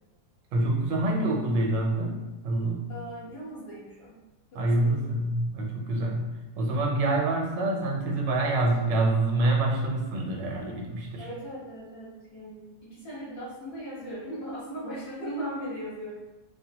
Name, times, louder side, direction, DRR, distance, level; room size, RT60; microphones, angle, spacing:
voice 1, 0.5-2.9 4.5-6.3 6.6-11.3, right 2 dB, 85° right, 0 dB, 1.4 m, -26 dB
voice 2, 2.9-4.2 4.5-5.1 11.2-16.1, equal, 65° left, -9 dB, 2.1 m, -38 dB
5.9 x 2.2 x 2.9 m, 1.1 s
omnidirectional pair, 1.9 m